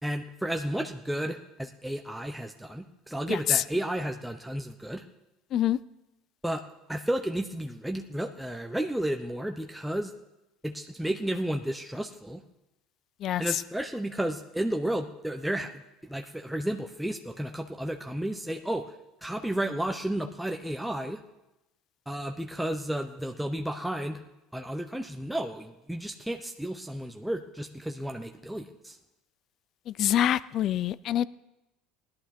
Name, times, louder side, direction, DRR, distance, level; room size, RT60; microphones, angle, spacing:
voice 1, 0.0-5.0 6.4-6.6 6.9-10.1 10.6-12.4 13.4-18.9 19.2-21.2 22.1-24.2 24.5-29.0, right 1 dB, 5° right, 4 dB, 0.8 m, -32 dB
voice 2, 3.3-3.6 5.5-5.8 13.2-13.6 29.9-31.3, left 11 dB, 50° left, 19 dB, 0.5 m, -26 dB
17.0 x 11.5 x 4.4 m, 0.95 s
supercardioid pair, 90°, 0 cm